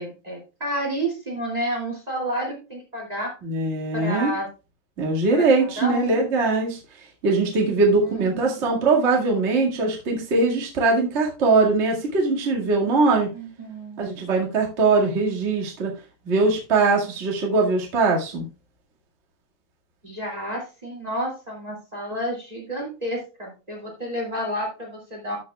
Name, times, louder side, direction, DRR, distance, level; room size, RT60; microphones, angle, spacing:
voice 1, 0.0-3.3 3.9-4.5 5.3-6.2 8.0-8.6 13.2-14.1 20.0-25.4, right 1 dB, 15° right, -1 dB, 1.5 m, -30 dB
voice 2, 3.4-4.3 5.0-6.8 7.2-13.3 14.0-15.9 16.2-18.5, right 3 dB, 45° right, -1 dB, 0.8 m, -21 dB
14.0 x 6.4 x 2.3 m, 0.31 s
omnidirectional pair, 4.7 m